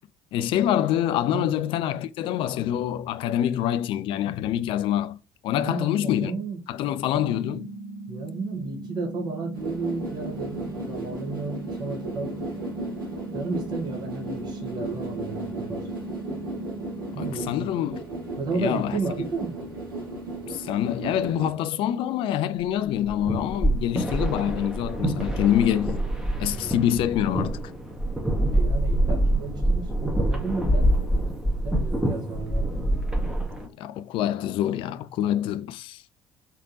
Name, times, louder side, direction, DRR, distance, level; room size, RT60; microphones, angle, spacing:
voice 1, 0.3-5.2 5.4-6.3 6.7-7.7 17.2-18.0 18.6-19.0 20.5-26.0 26.4-27.6 33.8-36.0, left 11 dB, 50° left, 0.3 m, -26 dB
voice 2, 5.6-6.6 8.1-12.5 13.3-15.9 17.1-17.6 18.4-19.6 26.5-26.8 28.5-29.9 30.3-31.2 31.6-32.8, right 3 dB, 40° right, 1.0 m, -33 dB
sound 1, 7.1-17.1, right 2 dB, 60° right, 1.2 m, -39 dB
sound 2, 9.5-21.5, right 1 dB, 75° right, 1.2 m, -35 dB
sound 3, 22.9-33.7, right 1 dB, 5° right, 0.9 m, -25 dB
3.3 x 2.9 x 2.5 m
figure-of-eight pair, 55°, 12 cm